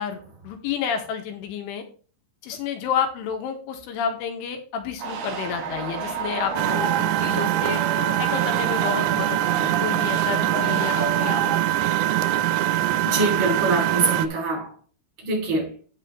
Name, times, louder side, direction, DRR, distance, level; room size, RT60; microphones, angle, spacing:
voice 1, 0.0-1.8 2.4-7.8 8.2-11.5, left 7 dB, 85° left, 4.0 m, -30 dB
sound 1, 5.0-11.6, right 5 dB, 65° right, 2.4 m, -31 dB
Engine, 6.6-14.3, right 13 dB, 85° right, 3.2 m, -23 dB
voice 2, 13.0-14.8 15.2-15.8, right 2 dB, 30° right, 3.1 m, -24 dB
8.8 x 8.0 x 3.3 m
omnidirectional pair, 5.5 m